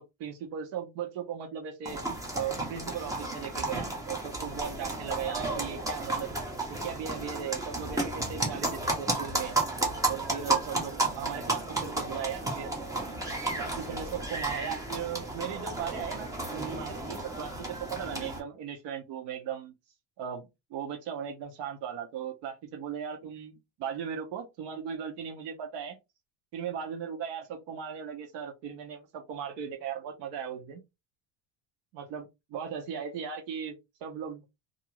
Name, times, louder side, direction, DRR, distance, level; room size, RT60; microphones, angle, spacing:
voice 1, 0.0-2.0 2.3-6.3 6.7-9.6 10.1-12.7 13.6-19.7 20.2-26.0 26.5-30.8 31.9-34.4, right 8 dB, 75° right, 3 dB, 0.8 m, -37 dB
sound 1, 1.9-18.4, right 2 dB, 10° right, 0.4 m, -33 dB
2.5 x 2.4 x 2.9 m, 0.22 s
cardioid pair, 170°, 42 cm